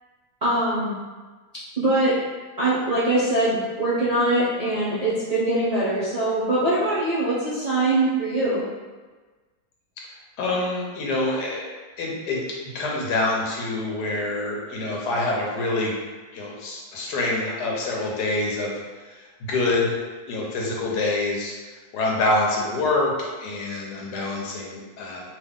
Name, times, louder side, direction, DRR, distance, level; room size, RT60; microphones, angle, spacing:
voice 1, 0.4-1.0 1.8-2.1 2.6-8.6, right 1 dB, 50° right, -10 dB, 0.4 m, -22 dB
voice 2, 10.4-11.6 12.0-16.0 16.3-20.0 20.3-21.5 21.9-25.3, left 2 dB, 90° left, -2 dB, 1.3 m, -26 dB
2.8 x 2.5 x 3.5 m, 1.3 s
omnidirectional pair, 1.7 m